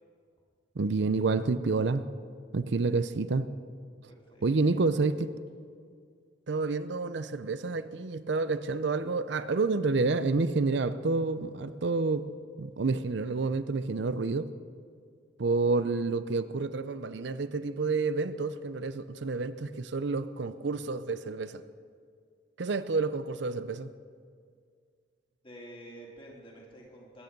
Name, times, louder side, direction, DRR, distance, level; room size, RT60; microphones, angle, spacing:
voice 1, 0.7-2.0 2.5-3.5 4.4-5.3 6.5-12.3 12.6-14.5 15.4-21.6 22.6-23.9, right 3 dB, 65° right, 0.5 m, -29 dB
voice 2, 4.1-4.8 25.4-27.2, right 1 dB, 30° left, 2.9 m, -49 dB
21.0 x 9.4 x 5.3 m
head